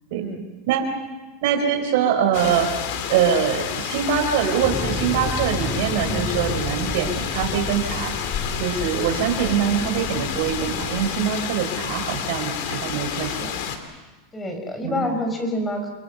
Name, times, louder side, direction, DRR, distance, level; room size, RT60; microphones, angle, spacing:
voice 1, 0.1-0.4 1.7-1.9 6.0-6.3 9.6-9.9 13.4-13.6 14.3-15.9, left 1 dB, 15° left, 5 dB, 5.7 m, -29 dB
voice 2, 1.4-2.7 3.1-8.1 8.6-13.5 14.8-15.1, right 8 dB, 70° right, 4 dB, 4.5 m, -23 dB
sound 1, 2.3-13.8, left 8 dB, 65° left, 3.1 m, -30 dB
sound 2, 4.6-11.1, left 4 dB, 40° left, 4.5 m, -32 dB
28.0 x 21.5 x 6.9 m, 1.2 s
supercardioid pair, 125°, 0 cm